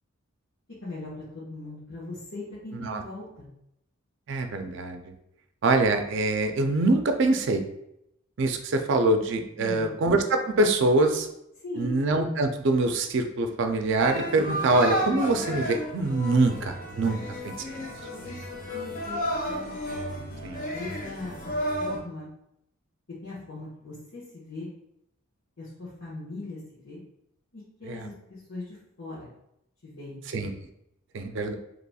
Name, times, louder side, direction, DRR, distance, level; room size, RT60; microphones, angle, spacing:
voice 1, 0.8-3.5 9.6-9.9 11.6-12.0 16.2-16.3 18.1-18.4 18.7-19.2 19.5-19.8 20.5-21.5 21.8-22.3 23.2-24.7 25.6-27.0 27.5-29.3 29.8-30.2, left 2 dB, 75° left, -9 dB, 1.3 m, -40 dB
voice 2, 4.3-5.1 5.6-7.6 8.4-11.3 11.8-17.2 17.4-17.8 20.4-20.6 27.9-28.1 30.3-30.5 31.1-31.5, right 2 dB, 60° right, 6 dB, 0.4 m, -24 dB
sound 1, 14.0-22.0, equal, 40° left, 0.7 m, -32 dB
4.1 x 2.9 x 2.3 m, 0.78 s
head